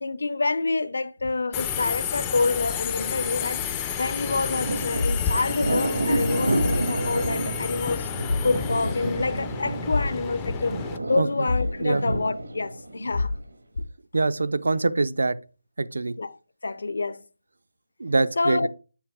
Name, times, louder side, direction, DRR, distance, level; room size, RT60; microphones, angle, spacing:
voice 1, 0.0-3.6 4.0-8.1 8.4-10.8 11.1-13.3 16.2-16.4 16.6-17.2 18.4-18.7, left 3 dB, 60° left, 0.5 m, -27 dB
Subway metro underground, 1.5-11.0, left 7 dB, 10° left, 0.4 m, -31 dB
Thunder, 4.0-13.5, right 1 dB, 85° right, 2.0 m, -30 dB
sound 1, 5.0-5.2 5.6-5.7 6.6-6.8 7.2-7.4 8.3-8.5 8.8-8.9 9.9-10.1 10.5-10.6 11.5-11.7 12.1-12.2 13.1-13.4 13.7-13.9, left 3 dB, 85° left, 1.6 m, -26 dB
voice 2, 14.1-15.4 15.8-16.1 18.0-18.7, right 3 dB, 70° right, 0.5 m, -24 dB
7.2 x 4.7 x 3.6 m
figure-of-eight pair, 175°, 0 cm